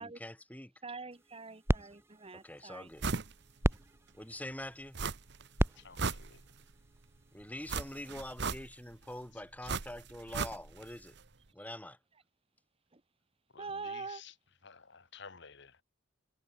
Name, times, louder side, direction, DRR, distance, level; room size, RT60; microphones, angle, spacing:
voice 1, 0.0-0.7 2.4-3.0 4.2-5.0 7.3-11.1 11.5-12.0, left 1 dB, 10° left, 2.9 m, -45 dB
voice 2, 0.8-2.9 12.9-13.0 13.6-14.2, right 4 dB, 30° right, 1.2 m, -44 dB
sound 1, 1.1-7.5, equal, 10° right, 1.5 m, -37 dB
sound 2, 3.0-3.3 3.7-3.8 5.0-5.5 5.8-6.7 7.7-9.0 9.7-10.9 11.2-11.3, right 4 dB, 55° right, 1.1 m, -36 dB
voice 3, 5.7-6.4 9.3-9.7 13.5-14.3 14.6-15.8, left 6 dB, 60° left, 1.8 m, -53 dB
head